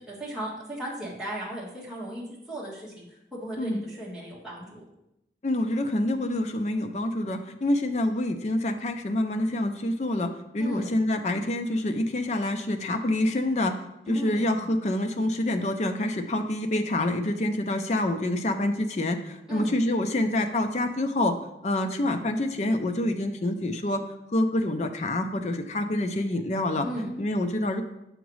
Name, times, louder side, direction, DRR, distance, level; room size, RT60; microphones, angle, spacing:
voice 1, 0.1-3.0 3.3-4.8 10.6-10.9 14.1-14.4 19.5-19.7 26.8-27.1, right 1 dB, 5° right, -7 dB, 1.6 m, -36 dB
voice 2, 3.6-3.9 5.4-13.7 14.1-21.3 21.6-24.0 24.3-26.9 27.2-27.8, left 1 dB, 40° left, 6 dB, 0.5 m, -27 dB
7.0 x 5.1 x 3.1 m, 0.84 s
head